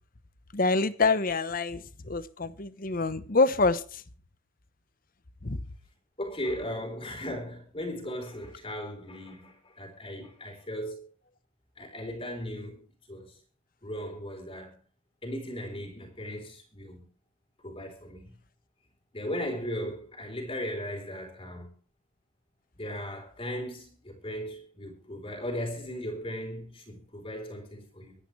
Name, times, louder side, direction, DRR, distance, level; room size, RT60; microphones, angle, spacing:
voice 1, 0.5-4.0 5.4-5.6, left 3 dB, 45° left, 1.0 m, -26 dB
voice 2, 6.2-11.1 11.8-13.4 13.8-14.8 15.2-17.0 17.6-18.3 19.1-21.7 22.8-28.2, equal, 30° left, 3.9 m, -37 dB
25.0 x 10.0 x 3.3 m
head